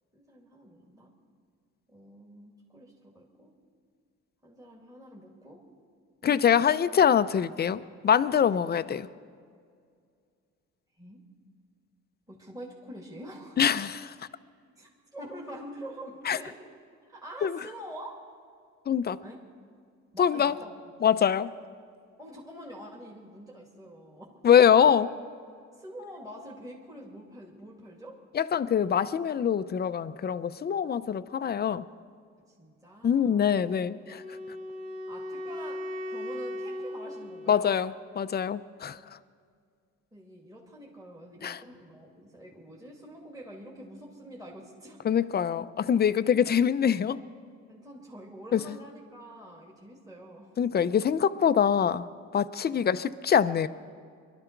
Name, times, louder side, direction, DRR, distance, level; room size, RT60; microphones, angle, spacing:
voice 1, 0.1-1.1 1.9-3.5 4.4-5.6 6.2-6.8 8.4-8.6 11.0-11.2 12.3-13.7 14.8-16.6 17.0-18.3 19.2-19.4 20.1-20.7 21.0-21.1 22.2-24.3 25.8-28.2 32.5-33.5 35.1-37.8 40.1-45.1 47.7-51.0 52.7-52.9, equal, 10° right, -2 dB, 2.4 m, -46 dB
voice 2, 6.2-9.0 13.6-14.1 16.3-16.4 17.4-17.6 18.9-19.2 20.2-20.5 21.0-21.5 24.4-25.1 28.3-31.8 33.0-34.2 37.5-39.0 41.4-41.6 45.0-47.2 48.5-48.6 50.6-52.1 52.3-53.7, left 8 dB, 35° left, 13 dB, 0.5 m, -24 dB
Wind instrument woodwind instrument, 34.0-38.2, left 1 dB, 25° right, 2.3 m, -38 dB
22.5 x 12.0 x 4.6 m, 2.2 s
cardioid pair, 90°, 30 cm